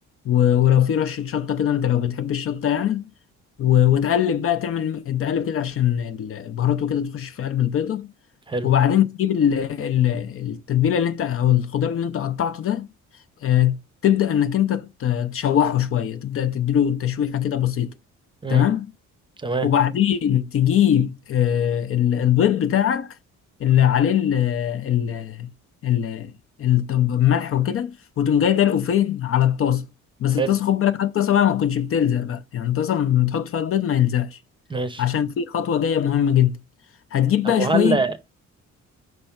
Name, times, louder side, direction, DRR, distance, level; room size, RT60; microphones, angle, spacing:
voice 1, 0.2-3.1 3.6-8.1 8.6-12.9 13.4-13.8 14.0-17.9 18.5-18.9 19.6-23.2 23.6-25.5 25.8-26.3 26.6-29.9 30.2-34.4 35.0-36.6 37.1-38.0, left 10 dB, 50° left, 0.6 m, -21 dB
voice 2, 34.7-35.0 37.4-38.2, right 3 dB, 15° right, 0.7 m, -24 dB
5.3 x 3.4 x 5.7 m
cardioid pair, 135°, 29 cm